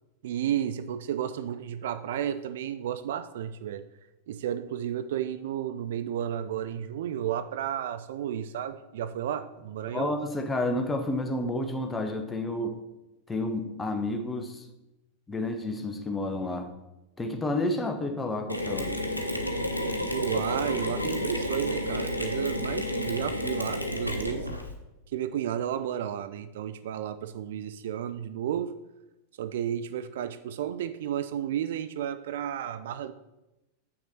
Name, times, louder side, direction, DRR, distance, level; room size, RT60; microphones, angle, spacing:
voice 1, 0.2-3.8 4.3-10.2 20.1-24.5 25.1-28.8 29.4-33.1, right 10 dB, 55° right, 0.3 m, -32 dB
voice 2, 9.9-12.8 13.3-14.6 15.3-16.7 17.2-19.0, left 2 dB, 10° left, 0.9 m, -30 dB
Mechanisms, 18.5-24.7, left 1 dB, 85° left, 0.8 m, -31 dB
7.7 x 6.1 x 4.2 m
figure-of-eight pair, 90°, 0 cm